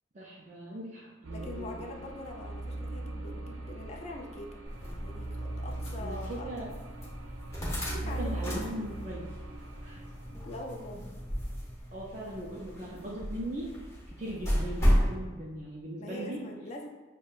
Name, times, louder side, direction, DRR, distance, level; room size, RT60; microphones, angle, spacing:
voice 1, 0.1-1.9 6.0-6.7 7.0-7.1 8.0-9.3 9.8-10.0 11.9-13.7 14.1-16.4, right 1 dB, 35° right, -3 dB, 0.4 m, -39 dB
sound 1, 1.2-10.8, right 2 dB, 90° right, 0.5 m, -40 dB
voice 2, 1.3-6.5 7.9-8.4 10.4-11.0 16.0-16.9, left 1 dB, 35° left, 1 dB, 0.3 m, -43 dB
sound 2, 4.6-15.1, equal, 15° left, 0.8 m, -34 dB
6.4 x 2.2 x 2.4 m, 1.3 s
head